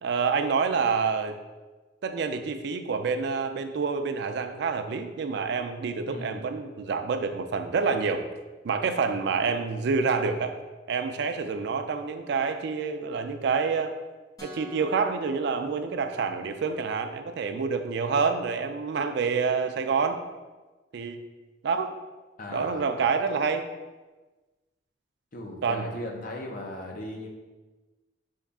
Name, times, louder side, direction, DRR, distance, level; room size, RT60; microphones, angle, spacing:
voice 1, 0.0-1.3 2.0-8.2 8.6-10.6 10.9-13.9 14.4-20.2 20.9-21.2 21.6-21.9 22.5-23.7 25.6-25.9, right 5 dB, 65° right, 8 dB, 0.4 m, -27 dB
voice 2, 6.1-6.4 22.4-22.9 25.3-27.3, left 1 dB, 50° left, 1 dB, 0.7 m, -37 dB
sound 1, 14.4-16.5, right 1 dB, 20° left, 0.8 m, -47 dB
5.3 x 2.4 x 3.5 m, 1.2 s
head